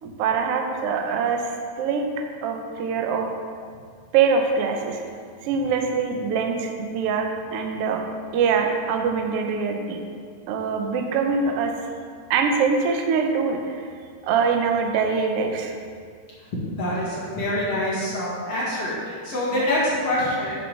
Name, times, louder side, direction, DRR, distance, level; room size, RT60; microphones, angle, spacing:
voice 1, 0.0-3.3 4.1-5.0 5.4-8.0 8.3-10.0 10.5-11.7 12.3-13.9 14.2-15.7 19.5-19.7, right 5 dB, 80° right, 3 dB, 1.3 m, -24 dB
voice 2, 16.8-20.5, left 1 dB, 50° left, -8 dB, 2.7 m, -25 dB
9.5 x 7.8 x 3.3 m, 2.1 s
omnidirectional pair, 3.6 m